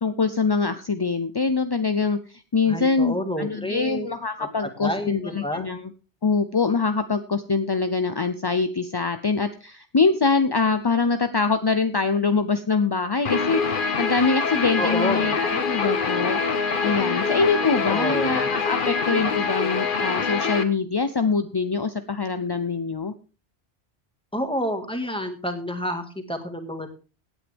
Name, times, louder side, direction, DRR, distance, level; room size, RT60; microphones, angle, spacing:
voice 1, 0.0-5.8 6.2-23.1, left 4 dB, 30° left, 10 dB, 0.5 m, -24 dB
voice 2, 2.7-4.1 4.4-4.5 4.8-5.6 14.8-15.4 17.8-18.5 24.3-26.9, equal, 5° left, 6 dB, 1.8 m, -29 dB
Guitar, 13.2-20.6, left 5 dB, 50° left, 1.3 m, -25 dB
17.0 x 9.0 x 3.5 m, 0.33 s
omnidirectional pair, 1.1 m